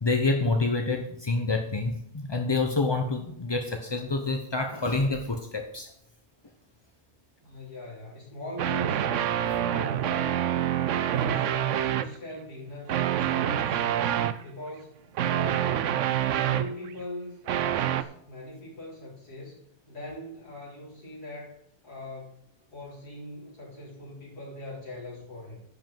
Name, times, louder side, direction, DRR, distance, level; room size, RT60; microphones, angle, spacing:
voice 1, 0.0-5.9 11.1-11.2, left 3 dB, 30° left, 4 dB, 0.5 m, -27 dB
voice 2, 7.4-9.0 9.3-10.8 11.1-14.0 14.4-15.8 16.3-19.6 19.9-21.6 21.8-22.4 22.7-25.6, left 1 dB, 70° left, -6 dB, 4.4 m, -41 dB
sound 1, 8.6-12.1 12.9-14.4 15.2-16.9 17.5-18.0, right 10 dB, 65° right, 0.8 m, -26 dB
11.0 x 5.3 x 7.5 m, 0.70 s
omnidirectional pair, 1.7 m